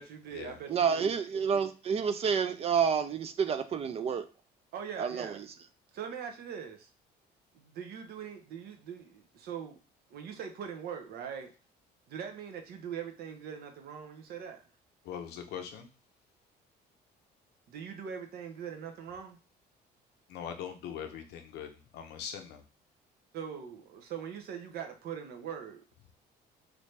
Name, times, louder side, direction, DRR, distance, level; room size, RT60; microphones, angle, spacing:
voice 1, 0.0-1.2 4.7-5.4 5.9-6.9 7.5-9.8 10.1-11.5 12.1-14.6 17.7-19.4 23.3-25.8, right 7 dB, 70° right, 0.7 m, -42 dB
voice 2, 0.7-4.2 5.0-5.3, right 6 dB, 35° right, 0.4 m, -29 dB
voice 3, 15.0-15.9 20.3-22.6, left 8 dB, 80° left, 0.7 m, -41 dB
3.2 x 2.6 x 3.2 m
cardioid pair, 110°, 17 cm